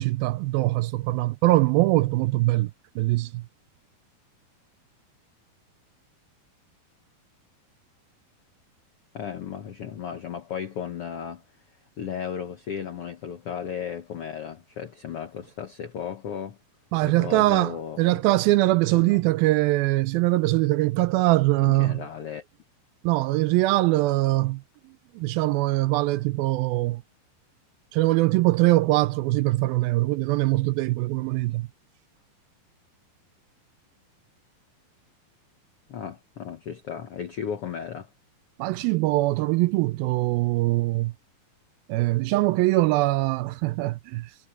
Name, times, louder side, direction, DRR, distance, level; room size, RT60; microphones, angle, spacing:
voice 1, 0.0-3.5 16.9-22.0 23.0-27.0 27.9-31.7 38.6-41.1 41.9-44.4, right 19 dB, 80° right, 2.3 m, -22 dB
voice 2, 9.1-11.4 12.0-16.6 17.0-18.2 18.9-19.2 21.6-22.4 35.9-38.1, left 8 dB, 80° left, 1.3 m, -35 dB
omnidirectional pair, 4.4 m